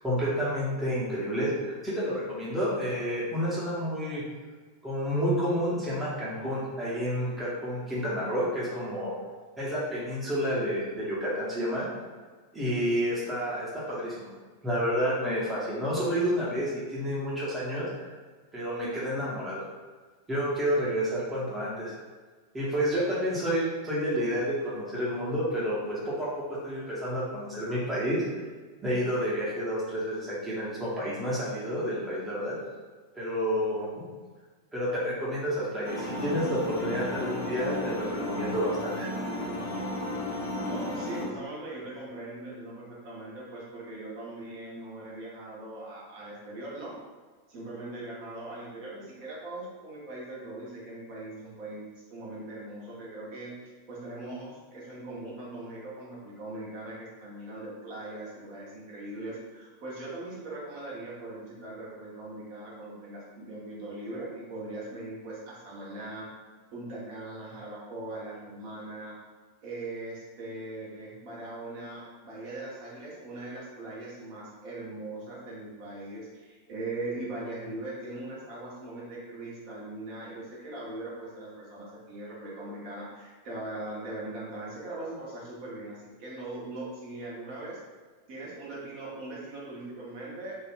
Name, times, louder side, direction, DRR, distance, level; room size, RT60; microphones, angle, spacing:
voice 1, 0.0-4.2 4.8-9.1 9.6-11.9 12.5-14.3 14.6-18.1 18.5-19.6 20.3-22.0 22.5-28.2 28.8-32.6 33.1-34.0 34.7-39.1, equal, 10° right, -8 dB, 0.9 m, -30 dB
sound 1, 35.8-41.3, left 1 dB, 50° left, 0.7 m, -33 dB
voice 2, 40.6-47.0 47.5-66.3 66.7-69.1 69.6-87.8 88.3-90.6, right 2 dB, 45° right, -6 dB, 0.9 m, -40 dB
3.3 x 2.4 x 2.2 m, 1.4 s
figure-of-eight pair, 90°, 0 cm